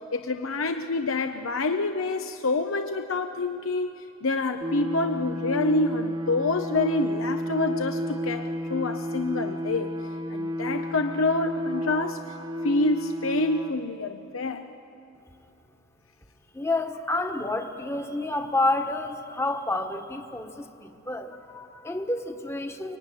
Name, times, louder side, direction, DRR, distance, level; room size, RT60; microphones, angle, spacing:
voice 1, 0.0-10.0 10.3-12.2 12.6-14.7, left 2 dB, 85° left, 7 dB, 0.9 m, -27 dB
sound 1, 4.6-13.7, equal, 20° right, 1.2 m, -31 dB
voice 2, 16.5-23.0, left 2 dB, 15° left, 5 dB, 1.3 m, -29 dB
24.0 x 23.0 x 9.9 m, 2.7 s
head